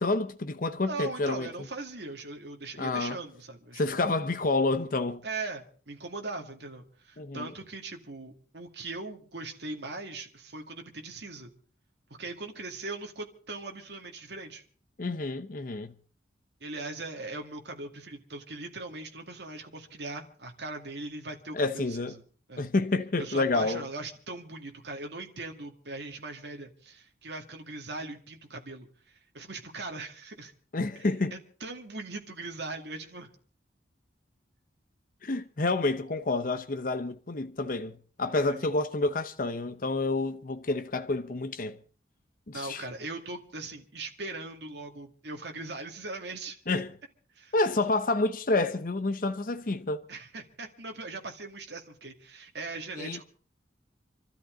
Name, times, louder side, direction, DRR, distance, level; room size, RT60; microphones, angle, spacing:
voice 1, 0.0-1.5 2.8-3.2 3.7-5.2 7.2-7.5 15.0-15.9 21.5-22.2 22.6-23.8 30.7-31.4 35.2-41.8 42.5-42.9 46.7-46.9 47.5-50.0 53.0-53.2, left 2 dB, 50° left, 0.7 m, -29 dB
voice 2, 0.9-4.0 5.2-11.5 12.2-14.6 16.6-22.1 22.5-22.7 23.2-30.5 31.3-33.3 38.5-38.7 42.5-46.6 47.4-47.5 50.1-53.2, right 3 dB, 65° right, 2.1 m, -40 dB
26.5 x 13.0 x 3.9 m
head